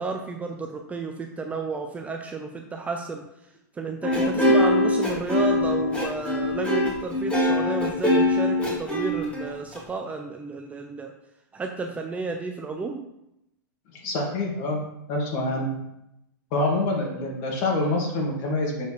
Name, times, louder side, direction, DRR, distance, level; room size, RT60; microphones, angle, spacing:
voice 1, 0.0-3.2 3.7-11.1 11.5-13.0, right 3 dB, 15° right, 3 dB, 0.5 m, -32 dB
sound 1, 4.0-9.8, left 1 dB, 10° left, 2.1 m, -22 dB
voice 2, 13.9-14.8 15.1-15.8 16.5-18.9, left 2 dB, 45° left, -1 dB, 2.2 m, -26 dB
6.7 x 4.0 x 4.9 m, 0.83 s
hypercardioid pair, 135°, 11 cm